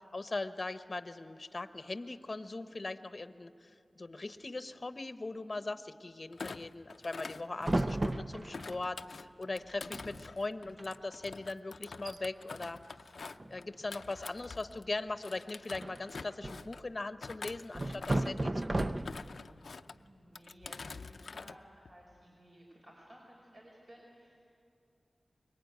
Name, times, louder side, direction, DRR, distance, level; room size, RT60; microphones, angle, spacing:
voice 1, 0.1-12.8 13.5-18.9, left 2 dB, 45° left, 10 dB, 0.8 m, -40 dB
Thump thud, 6.3-8.1 8.5-14.9 15.2-16.8 17.2-18.4 18.9-20.0 20.4-21.6 21.9-22.2, left 4 dB, 80° left, 0.5 m, -47 dB
sound 1, 7.6-8.8 9.7-9.8 9.9-10.3 10.6-10.8 11.4-11.5 11.9-12.2 13.3-13.8 15.8-16.8 17.7-19.4, right 1 dB, 35° right, 0.6 m, -34 dB
voice 2, 19.9-24.4, equal, 60° right, -3 dB, 5.1 m, -57 dB
25.0 x 22.0 x 9.3 m, 2.6 s
wide cardioid pair, 70°, 0 cm